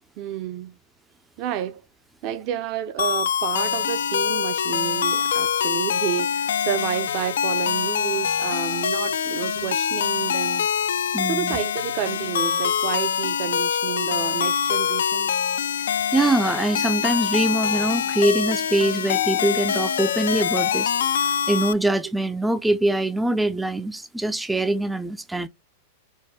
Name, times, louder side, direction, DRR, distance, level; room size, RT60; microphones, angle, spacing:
voice 1, 0.2-0.8 1.4-1.8 2.2-10.7 11.2-15.3, right 11 dB, 50° right, 0.6 m, -30 dB
sound 1, 3.0-21.7, left 8 dB, 80° left, 0.3 m, -24 dB
voice 2, 11.1-11.6 16.1-25.5, right 1 dB, 5° right, 0.4 m, -23 dB
4.3 x 2.1 x 3.3 m
hypercardioid pair, 120°, 0 cm